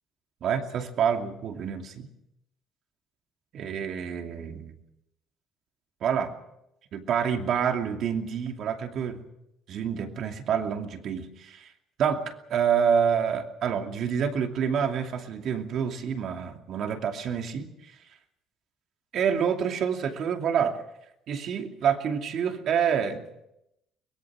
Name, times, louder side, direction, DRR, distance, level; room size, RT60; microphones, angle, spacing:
voice 1, 0.4-2.1 3.5-4.8 6.0-6.3 6.9-9.3 9.7-11.7 12.0-17.9 19.1-20.8 21.3-23.2, right 7 dB, 50° right, 4 dB, 2.6 m, -27 dB
23.5 x 21.5 x 6.2 m, 0.84 s
cardioid pair, 145°, 0 cm